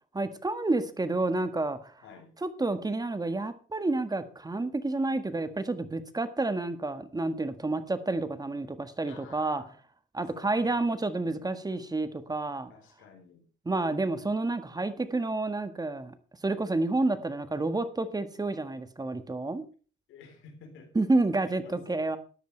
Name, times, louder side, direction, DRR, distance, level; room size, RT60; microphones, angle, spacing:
voice 1, 0.1-1.9 2.4-9.6 10.1-12.7 13.6-16.1 16.4-19.6 20.9-22.2, right 2 dB, 20° right, 10 dB, 1.5 m, -29 dB
voice 2, 2.0-2.3 9.1-9.8 10.3-10.9 11.2-11.7 12.7-13.5 20.1-20.9 21.4-22.2, left 5 dB, 90° left, 4 dB, 3.9 m, -52 dB
13.5 x 10.5 x 4.5 m, 0.39 s
cardioid pair, 90°, 20 cm